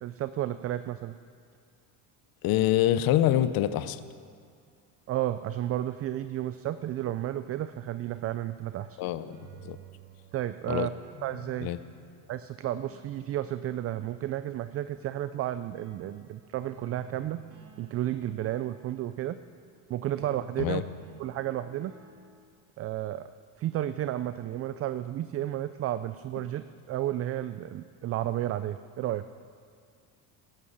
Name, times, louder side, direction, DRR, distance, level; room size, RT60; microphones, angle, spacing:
voice 1, 0.0-1.1 5.1-9.0 10.3-10.9 11.2-11.7 12.3-17.4 17.8-19.4 19.9-20.8 21.2-21.9 22.8-23.3 23.6-29.2, right 13 dB, 35° right, 12 dB, 0.4 m, -32 dB
voice 2, 2.4-4.0 9.0-9.4 9.6-9.8 10.7-10.9 11.6-11.8 20.6-20.8, left 13 dB, 55° left, 13 dB, 0.8 m, -25 dB
sound 1, 8.7-14.7 15.8-16.1 16.6-19.6 20.1-22.5, right 4 dB, 75° right, 2.9 m, -52 dB
14.0 x 11.5 x 7.3 m, 2.2 s
supercardioid pair, 115°, 42 cm